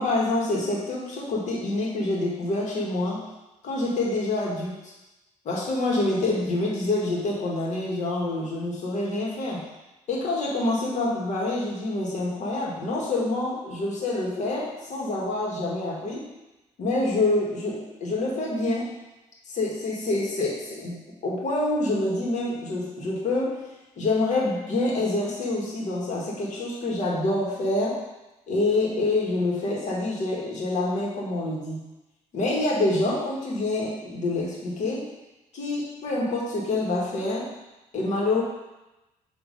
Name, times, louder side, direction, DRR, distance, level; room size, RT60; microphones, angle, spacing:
voice 1, 0.0-3.2 3.6-4.8 5.4-9.6 10.1-16.3 16.8-18.9 19.5-23.6 24.0-28.0 28.5-31.8 32.3-35.1 35.5-37.5 37.9-38.4, left 2 dB, 60° left, -3 dB, 2.0 m, -26 dB
7.6 x 3.3 x 5.4 m, 1.0 s
cardioid pair, 110°, 14 cm